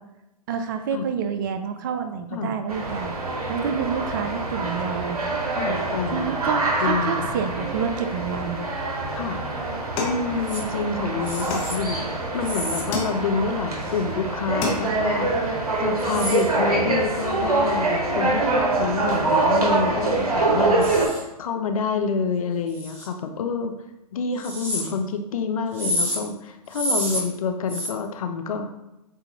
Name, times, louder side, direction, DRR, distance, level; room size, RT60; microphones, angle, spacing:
voice 1, 0.5-5.2 6.1-8.6, right 6 dB, 30° right, 8 dB, 0.3 m, -28 dB
sound 1, 2.7-21.1, right 3 dB, 70° right, 1.1 m, -25 dB
voice 2, 5.5-6.5 6.8-7.3 9.1-9.4 10.0-23.7 24.1-28.7, left 5 dB, 60° left, 6 dB, 0.6 m, -28 dB
sound 2, 10.0-10.9 11.5-12.2 12.9-13.6 14.1-14.2 14.4-15.2, left 2 dB, 25° left, 0.9 m, -31 dB
sound 3, 10.5-10.6 11.2-11.8 12.4-12.8 13.8-14.0 16.0-16.5 20.8-21.2 22.7-23.1 24.4-24.9 25.7-26.2 26.7-27.2 27.7-27.9, equal, 10° right, 1.5 m, -29 dB
7.3 x 2.5 x 2.9 m, 0.94 s
figure-of-eight pair, 120°, 20 cm